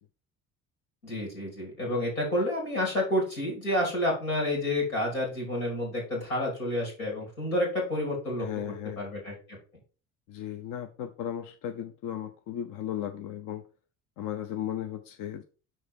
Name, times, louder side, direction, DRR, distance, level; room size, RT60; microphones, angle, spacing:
voice 1, 1.0-8.5 9.0-9.3, left 1 dB, 80° left, 3.3 m, -29 dB
voice 2, 8.4-9.1 10.3-13.6 14.2-15.4, left 10 dB, 50° left, 0.7 m, -36 dB
6.2 x 4.4 x 5.2 m
figure-of-eight pair, 55°, 43 cm